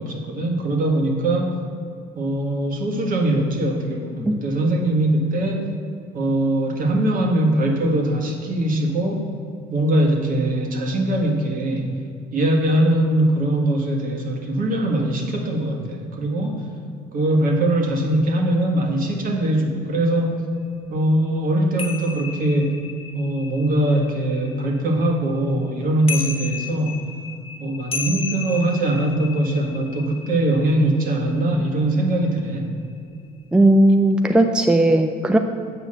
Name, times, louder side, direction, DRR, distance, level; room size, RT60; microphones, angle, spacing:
voice 1, 0.0-1.5 2.1-5.7 6.1-9.3 9.7-11.9 12.3-16.6 17.1-20.5 20.9-22.8 23.1-27.0 27.6-32.8, right 1 dB, 55° right, 2 dB, 1.7 m, -21 dB
sound 1, 21.8-25.3 25.8-31.8 32.1-32.5, left 5 dB, 35° left, 0.8 m, -34 dB
voice 2, 33.5-35.4, right 1 dB, 5° right, 6 dB, 0.5 m, -16 dB
8.3 x 5.2 x 7.6 m, 2.5 s
cardioid pair, 110°, 17 cm